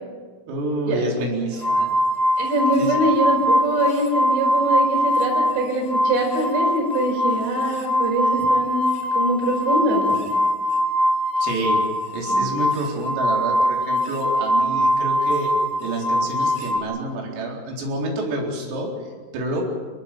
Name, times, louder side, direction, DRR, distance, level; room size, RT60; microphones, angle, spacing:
voice 1, 0.5-1.9 2.8-2.9 11.4-11.8 12.1-15.5 15.8-19.6, right 1 dB, 80° right, -1 dB, 6.9 m, -28 dB
sound 1, 1.6-5.6 5.8-16.8, equal, 20° left, 3.0 m, -22 dB
voice 2, 2.4-8.9 9.1-10.2 12.3-12.5, right 1 dB, 60° right, 1 dB, 7.1 m, -23 dB
29.0 x 15.5 x 9.3 m, 1.5 s
omnidirectional pair, 5.9 m